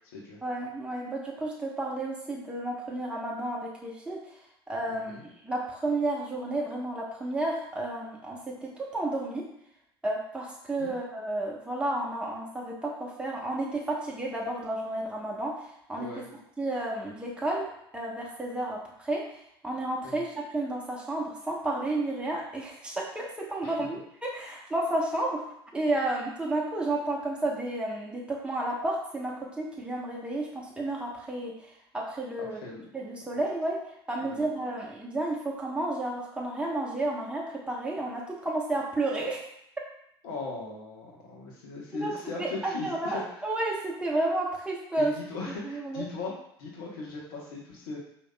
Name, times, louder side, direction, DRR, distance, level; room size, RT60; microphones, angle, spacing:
voice 1, 0.4-4.2 4.7-5.2 5.4-9.4 10.0-15.6 15.9-16.1 16.6-19.3 19.6-25.4 25.7-31.5 31.9-32.6 32.9-33.8 34.1-39.4 42.0-45.1 45.6-46.0, right 2 dB, 10° right, -3 dB, 1.0 m, -31 dB
voice 2, 4.9-5.2 10.8-10.9 16.0-16.2 20.0-20.2 23.6-23.9 32.6-32.9 34.2-34.4 40.2-43.2 45.0-46.3 46.6-48.0, left 3 dB, 65° left, -3 dB, 1.0 m, -38 dB
4.8 x 3.0 x 2.2 m, 0.74 s
figure-of-eight pair, 65°, 13 cm